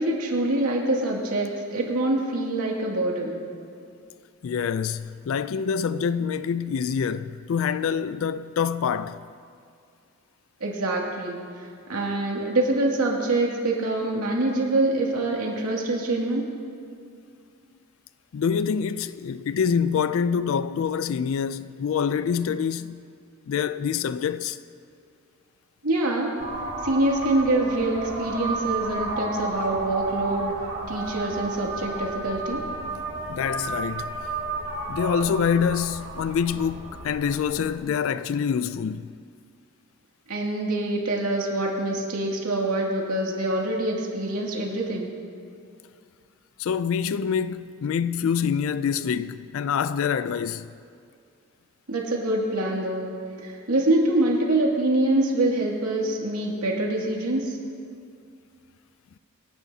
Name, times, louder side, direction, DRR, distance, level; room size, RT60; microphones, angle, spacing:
voice 1, 0.0-3.4 10.6-16.5 25.8-26.3 26.8-30.5 30.9-32.6 40.3-45.1 51.9-53.1 53.4-57.6, right 2 dB, 85° right, 2.4 m, -25 dB
voice 2, 4.4-9.2 18.3-23.0 23.5-24.6 33.3-34.3 34.9-39.1 46.6-50.7, left 7 dB, 65° left, 0.3 m, -26 dB
sound 1, 26.4-37.7, right 3 dB, 55° right, 2.8 m, -32 dB
25.0 x 11.0 x 2.8 m
head